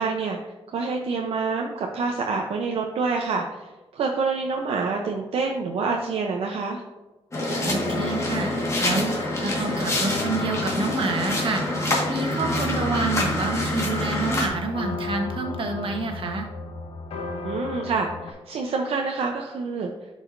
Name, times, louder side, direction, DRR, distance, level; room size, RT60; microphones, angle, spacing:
voice 1, 0.0-6.8 17.4-19.9, right 4 dB, 75° right, 1 dB, 0.7 m, -27 dB
sound 1, 7.3-14.5, left 1 dB, 30° left, 1.6 m, -26 dB
voice 2, 7.6-8.5 8.8-11.6 12.1-16.5, right 3 dB, 60° right, 3 dB, 1.2 m, -28 dB
sound 2, 7.7-18.3, left 3 dB, 70° left, 0.8 m, -35 dB
10.5 x 4.8 x 2.6 m, 1.2 s
wide cardioid pair, 125°, 10 cm